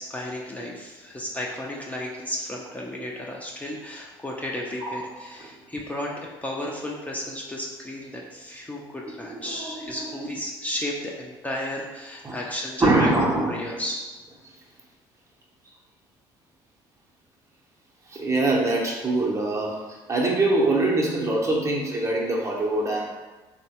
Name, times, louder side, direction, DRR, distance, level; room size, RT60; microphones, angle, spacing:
voice 1, 0.0-13.1 13.5-14.1, left 1 dB, 15° left, -2 dB, 0.5 m, -33 dB
voice 2, 9.3-10.1 12.2-12.4 12.8-13.6 18.1-23.1, right 2 dB, 30° right, -2 dB, 0.6 m, -24 dB
3.0 x 2.1 x 2.9 m, 1.2 s
supercardioid pair, 75°, 11 cm